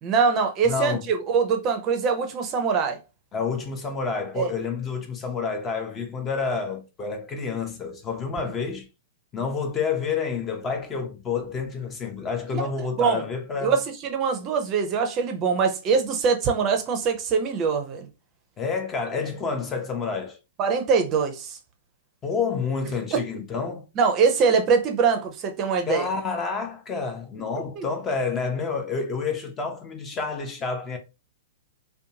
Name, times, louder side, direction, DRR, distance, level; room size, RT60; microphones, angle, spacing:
voice 1, 0.0-3.0 4.4-4.5 12.5-12.6 13.0-13.2 13.6-18.1 20.6-21.6 23.1-23.2 24.0-26.1 27.8-27.9, right 5 dB, 30° right, 0.5 m, -23 dB
voice 2, 0.6-1.0 3.3-8.9 9.3-13.8 18.6-20.4 22.2-23.9 25.9-31.0, left 5 dB, 20° left, 0.6 m, -29 dB
2.6 x 2.2 x 2.7 m
figure-of-eight pair, 105°, 0 cm